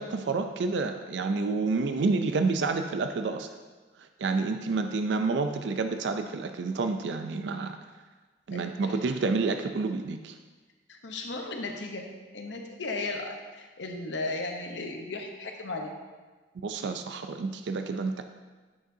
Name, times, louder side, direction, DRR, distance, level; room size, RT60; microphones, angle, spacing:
voice 1, 0.0-3.5 4.0-7.8 8.5-10.3 16.6-18.2, right 4 dB, 75° right, 7 dB, 0.4 m, -29 dB
voice 2, 8.5-8.9 10.9-16.0, left 2 dB, 85° left, 3 dB, 0.9 m, -36 dB
8.6 x 6.4 x 2.7 m, 1.3 s
head